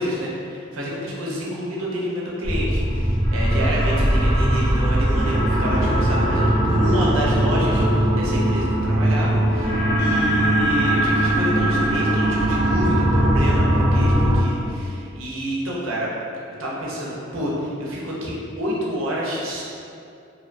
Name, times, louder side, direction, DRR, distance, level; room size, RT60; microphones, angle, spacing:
voice 1, 0.0-16.1 16.6-19.6, equal, 80° right, -4 dB, 0.5 m, -28 dB
sound 1, 2.4-14.4, right 1 dB, 5° left, 0.5 m, -20 dB
2.6 x 2.1 x 2.5 m, 2.5 s
head